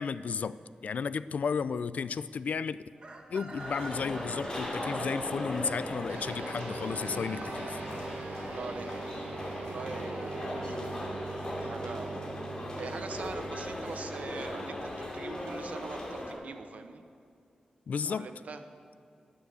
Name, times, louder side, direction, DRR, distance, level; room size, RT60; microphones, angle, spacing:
voice 1, 0.0-2.8 3.3-7.8 17.9-18.3, left 6 dB, 70° left, 16 dB, 0.3 m, -33 dB
Chicken rooster, 3.0-8.9, right 2 dB, 40° right, 1.3 m, -47 dB
sound 1, 3.6-16.3, left 1 dB, 30° left, 2.6 m, -38 dB
sound 2, 6.1-15.8, right 4 dB, 85° right, 1.1 m, -43 dB
voice 2, 8.4-8.9 9.5-12.2 12.8-17.0 18.0-18.6, right 4 dB, 70° right, 8 dB, 0.9 m, -43 dB
11.0 x 9.3 x 8.3 m, 2.5 s
wide cardioid pair, 135°, 3 cm